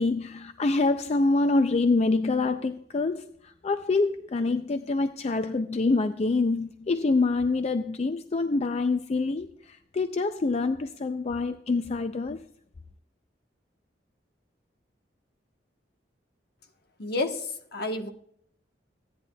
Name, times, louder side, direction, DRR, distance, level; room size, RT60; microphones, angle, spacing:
voice 1, 0.0-12.4, left 3 dB, 35° left, 0.4 m, -26 dB
voice 2, 17.0-18.1, left 2 dB, 60° left, 1.1 m, -30 dB
15.5 x 10.5 x 2.2 m
head